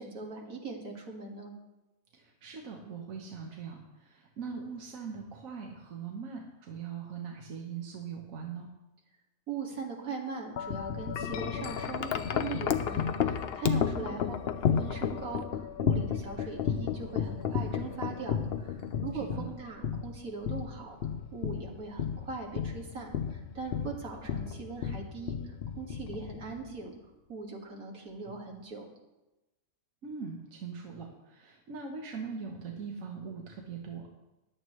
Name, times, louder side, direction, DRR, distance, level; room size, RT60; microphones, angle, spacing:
voice 1, 0.0-1.5 9.5-14.3 14.7-26.9 27.3-28.9, right 4 dB, 90° right, -1 dB, 2.4 m, -40 dB
voice 2, 2.1-8.7 14.0-14.3 19.1-19.5 28.2-28.4 30.0-34.1, right 6 dB, 70° right, 0 dB, 1.5 m, -41 dB
Wind chime, 10.6-26.7, left 8 dB, 55° left, 0.7 m, -33 dB
15.0 x 11.0 x 3.2 m, 1.0 s
omnidirectional pair, 1.4 m